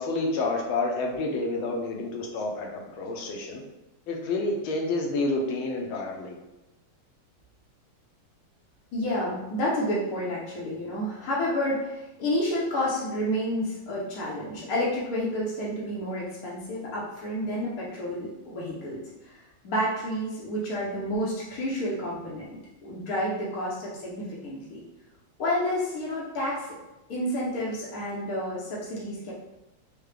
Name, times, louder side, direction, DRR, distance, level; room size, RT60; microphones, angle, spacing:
voice 1, 0.0-3.6 4.1-6.4, left 2 dB, 80° left, 2 dB, 1.4 m, -29 dB
voice 2, 8.9-19.4 19.6-24.8 25.4-26.8 27.1-29.3, equal, 60° left, -6 dB, 0.9 m, -30 dB
4.7 x 2.2 x 3.2 m, 0.97 s
omnidirectional pair, 2.3 m